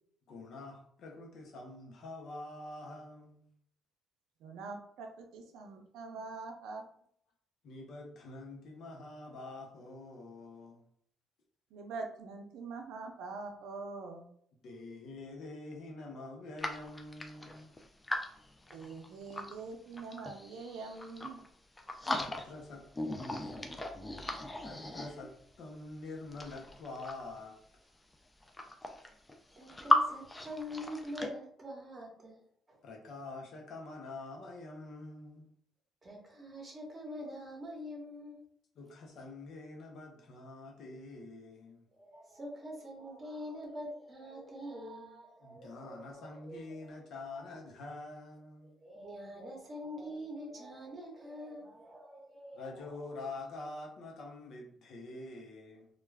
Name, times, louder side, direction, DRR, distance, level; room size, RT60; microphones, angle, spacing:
voice 1, 0.3-3.5 6.1-6.3 7.6-10.8 14.6-17.7 22.2-22.8 23.3-23.5 24.6-27.6 32.8-35.5 38.8-41.9 45.4-48.7 52.5-55.9, left 2 dB, 65° left, 0.7 m, -46 dB
voice 2, 4.4-6.8 11.7-14.3 18.7-21.4, right 4 dB, 85° right, 0.5 m, -44 dB
sound 1, 16.6-19.6 19.9-21.5 21.8-22.7 22.9-25.5 26.2-27.4 28.1-28.2 28.4-30.0 30.3-31.3, left 2 dB, 15° left, 0.3 m, -36 dB
voice 3, 29.6-32.8 36.0-38.4 41.9-47.5 48.6-53.1, equal, 30° right, 0.9 m, -45 dB
2.3 x 2.2 x 3.2 m
cardioid pair, 120°, 0 cm